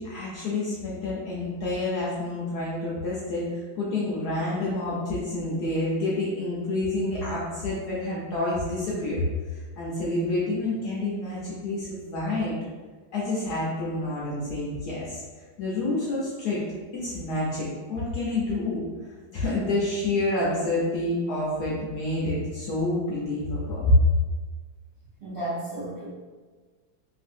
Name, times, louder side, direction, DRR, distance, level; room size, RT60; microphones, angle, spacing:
voice 1, 0.0-12.6 13.1-15.2 15.6-16.6 16.9-18.8 19.3-24.0, left 2 dB, 70° left, -7 dB, 0.9 m, -28 dB
voice 2, 25.2-26.1, right 1 dB, 55° right, -12 dB, 0.6 m, -33 dB
3.1 x 2.6 x 2.5 m, 1.4 s
omnidirectional pair, 2.2 m